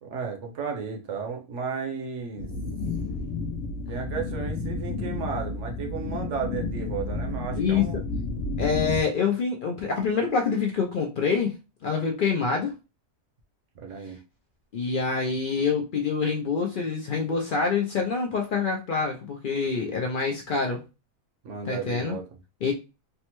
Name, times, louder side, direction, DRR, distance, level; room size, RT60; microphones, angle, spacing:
voice 1, 0.0-2.5 3.9-8.1 13.7-14.2 21.4-22.2, right 6 dB, 65° right, 3 dB, 1.0 m, -34 dB
sound 1, 2.4-9.0, left 3 dB, 85° left, 1.1 m, -31 dB
voice 2, 7.6-7.9 8.6-11.5 11.8-12.7 14.7-20.8 21.6-22.2 22.6-22.7, left 5 dB, 65° left, 1 dB, 0.5 m, -26 dB
3.4 x 2.1 x 2.9 m, 0.28 s
omnidirectional pair, 1.4 m